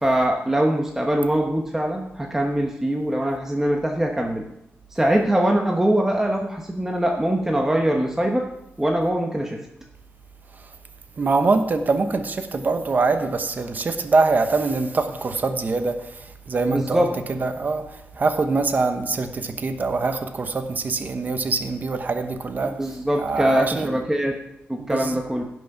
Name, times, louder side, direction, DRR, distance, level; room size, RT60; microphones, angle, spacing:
voice 1, 0.0-4.4 4.9-8.4 8.8-9.6 16.7-17.1 22.6-24.4 24.7-25.4, right 1 dB, 10° right, 1 dB, 1.0 m, -22 dB
voice 2, 11.2-16.0 16.5-17.0 17.4-17.8 18.2-22.7 23.2-23.9 24.8-25.1, right 3 dB, 40° right, 7 dB, 1.0 m, -23 dB
16.0 x 6.3 x 5.8 m, 0.81 s
wide cardioid pair, 155°, 5 cm